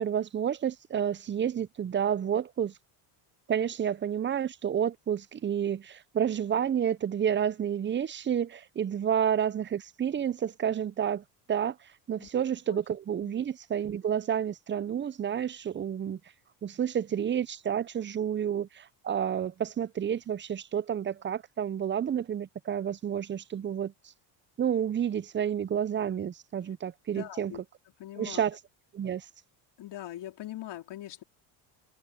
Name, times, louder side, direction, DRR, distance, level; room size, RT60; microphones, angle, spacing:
voice 1, 0.0-2.7 3.5-11.8 12.1-16.2 16.6-23.9 24.6-27.6 28.2-28.6 28.9-29.3, right 9 dB, 25° right, 0.6 m, -30 dB
voice 2, 27.1-27.6 28.0-28.4 29.8-31.2, left 13 dB, 55° left, 3.1 m, -41 dB
supercardioid pair, 90°, 49 cm